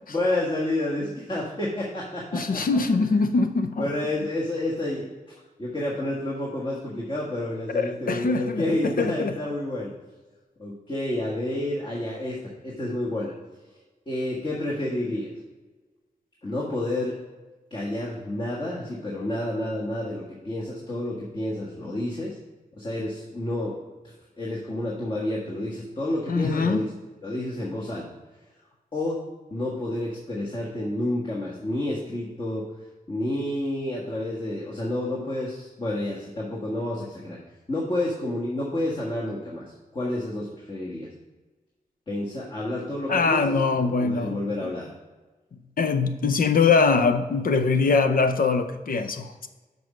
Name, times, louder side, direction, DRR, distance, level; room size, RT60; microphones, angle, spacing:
voice 1, 0.1-2.8 3.8-5.0 5.6-9.9 10.6-13.3 14.1-15.3 16.4-17.2 17.7-22.4 22.8-23.8 24.4-26.9 27.2-28.1 28.9-29.2 29.5-32.7 33.1-37.4 37.7-41.1 42.1-44.9, left 1 dB, 35° left, -5 dB, 1.5 m, -29 dB
voice 2, 2.3-3.9 7.7-9.3 26.3-26.8 43.1-44.7 45.8-49.5, left 4 dB, 75° left, 9 dB, 0.6 m, -23 dB
6.2 x 5.4 x 6.1 m, 1.2 s
wide cardioid pair, 110°, 15 cm